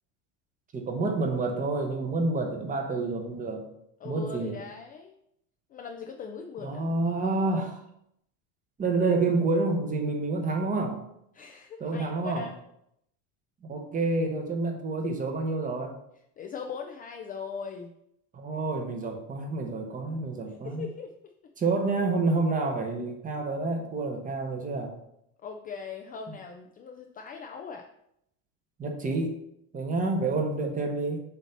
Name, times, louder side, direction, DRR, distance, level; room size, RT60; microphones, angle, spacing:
voice 1, 0.7-3.6 4.0-4.6 6.6-7.8 8.8-11.0 11.8-12.4 13.7-16.0 18.3-20.9 21.6-24.9 28.8-29.4 29.7-31.2, right 3 dB, 20° right, 3 dB, 1.0 m, -28 dB
voice 2, 4.0-5.1 5.7-6.8 11.3-12.6 16.4-17.9 20.5-21.1 21.4-21.5 25.4-27.9, left 5 dB, 25° left, 3 dB, 0.4 m, -40 dB
7.0 x 2.8 x 5.8 m, 0.76 s
supercardioid pair, 140°, 38 cm